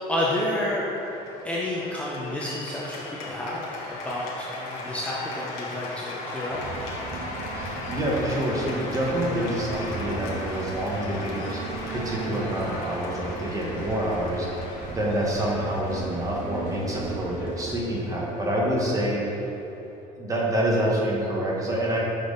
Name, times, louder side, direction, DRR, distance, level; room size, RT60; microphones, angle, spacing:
voice 1, 0.1-0.9 1.4-6.6, left 1 dB, 10° left, -6 dB, 0.6 m, -30 dB
Cheering / Applause, 0.8-20.0, left 2 dB, 85° left, 1.1 m, -38 dB
sound 1, 6.5-17.7, right 4 dB, 60° right, 0.8 m, -37 dB
voice 2, 7.5-11.6 11.9-19.4 20.2-22.0, right 1 dB, 20° right, -4 dB, 1.2 m, -27 dB
6.0 x 5.2 x 3.9 m, 3.0 s
cardioid pair, 145°, 16 cm